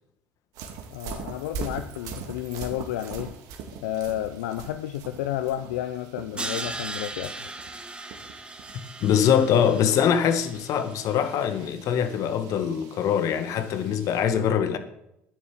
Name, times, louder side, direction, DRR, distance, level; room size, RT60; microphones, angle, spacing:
sound 1, 0.5-14.2, right 5 dB, 65° right, 2.4 m, -42 dB
voice 1, 0.9-3.3 3.8-7.5, left 12 dB, 80° left, 0.7 m, -31 dB
Crash cymbal, 6.4-11.4, right 2 dB, 15° right, 2.0 m, -38 dB
voice 2, 9.0-14.8, left 8 dB, 60° left, 1.9 m, -23 dB
11.0 x 10.0 x 7.8 m
hypercardioid pair, 75°, 6 cm